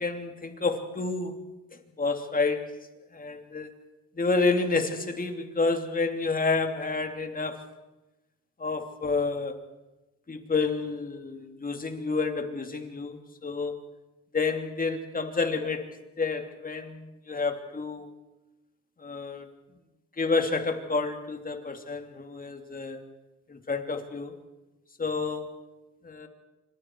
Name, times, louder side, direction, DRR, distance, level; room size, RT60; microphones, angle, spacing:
voice 1, 0.0-1.4 2.0-2.7 3.1-3.7 4.2-7.6 8.6-9.5 10.3-13.7 14.3-18.1 19.0-19.5 20.2-23.0 23.5-24.3 25.0-25.5 26.0-26.3, left 4 dB, 30° left, 6 dB, 3.0 m, -29 dB
27.5 x 25.5 x 4.8 m, 1.0 s
cardioid pair, 90°, 30 cm